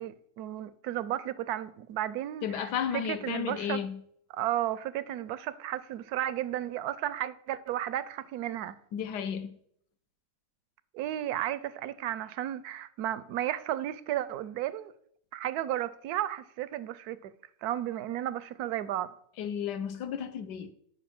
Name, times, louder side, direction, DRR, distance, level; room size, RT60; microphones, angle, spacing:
voice 1, 0.0-3.8 4.3-8.8 10.9-14.9 15.3-17.3 17.6-19.1, right 12 dB, 70° right, 1.0 m, -33 dB
voice 2, 2.4-4.0 8.9-9.5 19.4-20.7, left 8 dB, 70° left, 1.4 m, -33 dB
10.0 x 5.5 x 5.9 m
omnidirectional pair, 1.9 m